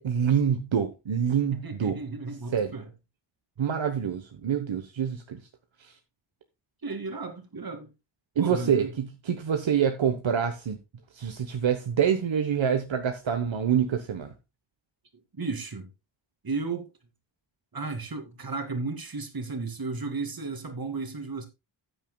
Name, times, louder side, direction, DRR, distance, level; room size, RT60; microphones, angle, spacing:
voice 1, 0.0-2.0 2.5-2.7 3.6-5.4 5.8-5.9 8.4-10.8 11.1-14.3, right 8 dB, 70° right, 1.2 m, -26 dB
voice 2, 1.5-2.9 6.8-7.9 8.4-9.0 15.3-15.9 16.4-16.9 17.7-21.5, right 3 dB, 50° right, 2.5 m, -34 dB
14.0 x 9.1 x 2.3 m
wide cardioid pair, 140°, 47 cm